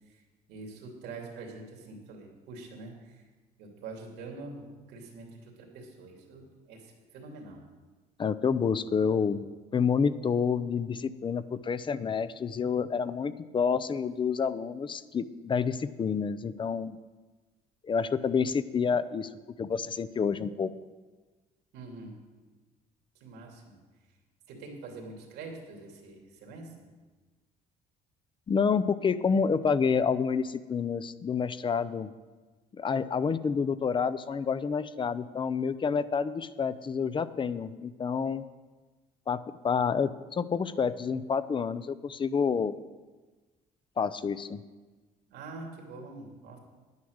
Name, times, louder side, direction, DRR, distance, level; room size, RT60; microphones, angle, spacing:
voice 1, 0.5-3.2 3.6-7.6 21.7-22.2 23.2-23.8 24.5-26.7 45.3-46.6, right 3 dB, 85° right, 1 dB, 2.6 m, -45 dB
voice 2, 8.2-9.4 9.7-17.0 17.8-19.3 19.6-20.7 28.5-32.1 32.8-38.4 39.3-42.7 44.0-44.6, left 6 dB, 30° left, 15 dB, 0.5 m, -28 dB
10.0 x 9.5 x 6.4 m, 1.3 s
cardioid pair, 110°, 17 cm